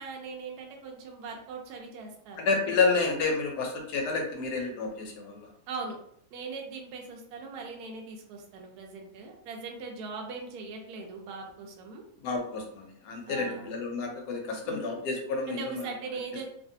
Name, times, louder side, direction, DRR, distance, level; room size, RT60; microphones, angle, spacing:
voice 1, 0.0-2.6 5.7-6.0 6.3-12.0 13.3-13.7 14.6-14.8 15.5-16.5, right 4 dB, 75° right, 1 dB, 1.1 m, -40 dB
voice 2, 2.4-5.5 12.2-15.9, left 4 dB, 85° left, 2 dB, 1.3 m, -30 dB
3.1 x 2.5 x 2.7 m, 0.66 s
omnidirectional pair, 1.7 m